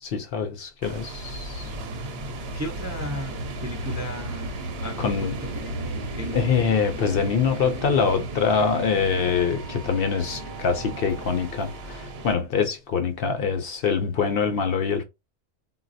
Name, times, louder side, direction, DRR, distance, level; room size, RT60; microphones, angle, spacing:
voice 1, 0.0-1.7 5.0-5.4 6.3-15.0, left 6 dB, 60° left, 0.7 m, -24 dB
sound 1, 0.8-12.3, right 1 dB, 65° right, 0.8 m, -34 dB
voice 2, 1.6-6.5, equal, 25° right, 0.4 m, -36 dB
3.9 x 2.2 x 2.5 m
omnidirectional pair, 1.2 m